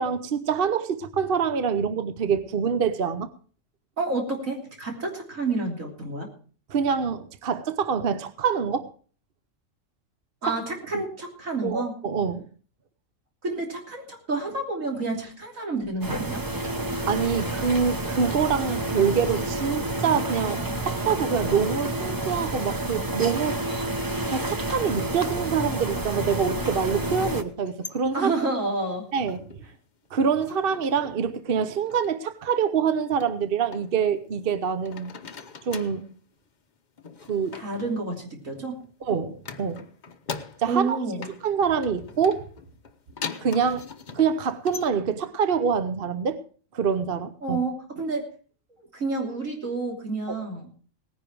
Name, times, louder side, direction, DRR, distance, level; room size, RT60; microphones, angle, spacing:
voice 1, 0.0-3.3 6.7-8.9 10.5-10.6 11.6-12.5 17.1-23.6 24.3-28.3 29.1-29.4 30.1-35.2 35.7-36.0 37.3-37.6 39.0-39.8 40.6-41.0 41.4-42.5 43.4-43.8 44.1-46.4 46.7-47.6 50.3-50.4, right 6 dB, 50° right, 1.0 m, -25 dB
voice 2, 4.0-6.3 10.4-12.0 13.4-16.4 28.1-29.0 37.5-38.8 40.7-41.3 47.4-48.3 48.8-50.7, right 3 dB, 80° right, 3.6 m, -29 dB
sound 1, 16.0-27.4, right 1 dB, 20° right, 0.9 m, -29 dB
sound 2, 27.5-29.7 30.0-31.3 31.6-32.1 33.2-34.6 34.8-36.1 37.0-38.9 39.4-40.9 41.2-44.9, left 5 dB, 40° left, 0.9 m, -41 dB
18.5 x 10.0 x 4.7 m
omnidirectional pair, 1.3 m